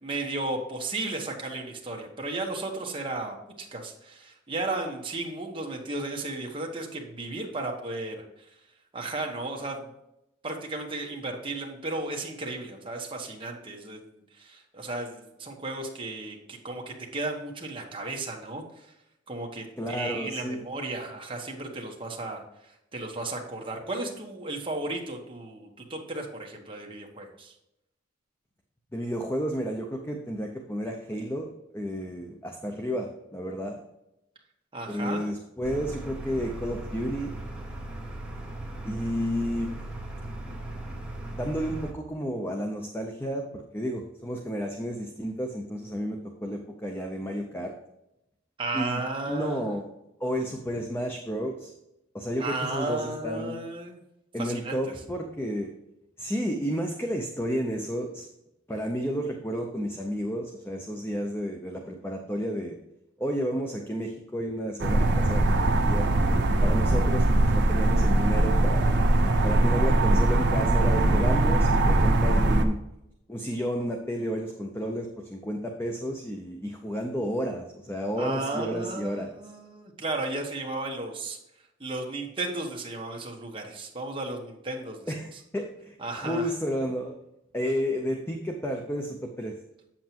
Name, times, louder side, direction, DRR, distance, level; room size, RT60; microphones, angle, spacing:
voice 1, 0.0-8.2 8.9-9.9 10.4-18.9 19.3-27.5 34.7-35.3 48.6-49.7 52.4-54.0 54.4-54.8 78.2-81.4 81.8-85.4 86.0-86.5, right 2 dB, 25° right, 0 dB, 1.2 m, -34 dB
voice 2, 19.8-20.6 28.9-33.8 34.9-37.4 38.8-39.7 41.3-47.7 48.7-49.8 50.2-51.7 52.1-53.5 54.3-55.7 56.2-58.3 58.7-62.8 63.2-69.0 69.4-72.8 73.3-79.4 85.1-87.1 87.5-89.5, equal, 10° left, 2 dB, 0.7 m, -32 dB
sound 1, 35.6-41.9, right 1 dB, 5° right, 1.3 m, -38 dB
sound 2, 64.8-72.6, right 2 dB, 55° right, 0.8 m, -21 dB
8.0 x 7.5 x 3.0 m, 0.85 s
head